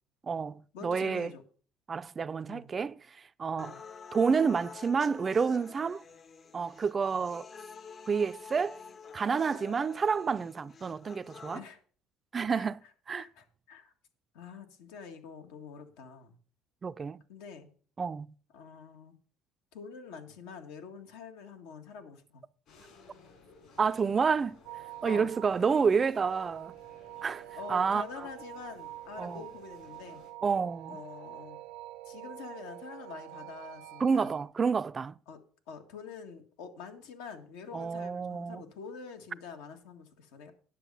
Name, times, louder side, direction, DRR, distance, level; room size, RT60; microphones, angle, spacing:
voice 1, 0.2-1.3 1.9-3.0 3.4-3.8 4.1-6.0 6.5-7.5 8.1-8.8 9.1-11.6 12.3-12.8 13.1-13.2 16.8-17.2 18.0-18.3 23.8-24.6 25.0-26.7 27.2-27.4 27.7-28.0 29.2-29.4 30.4-31.0 34.0-35.1 37.7-38.6, right 5 dB, 30° right, 0.4 m, -29 dB
voice 2, 0.7-1.4 2.5-2.7 3.6-3.8 11.5-11.8 12.5-13.9 14.3-16.4 17.3-17.7 18.5-19.1 19.7-22.4 24.3-24.5 25.0-25.3 25.6-25.7 27.6-30.2 30.9-31.6 32.0-34.3 35.3-40.5, left 5 dB, 90° left, 1.6 m, -46 dB
sound 1, 3.6-11.6, left 6 dB, 35° left, 0.6 m, -48 dB
sound 2, 22.7-30.3, left 4 dB, 60° left, 4.8 m, -58 dB
sound 3, 24.6-34.4, right 16 dB, 85° right, 0.7 m, -46 dB
10.0 x 6.5 x 5.4 m
cardioid pair, 105°, 0 cm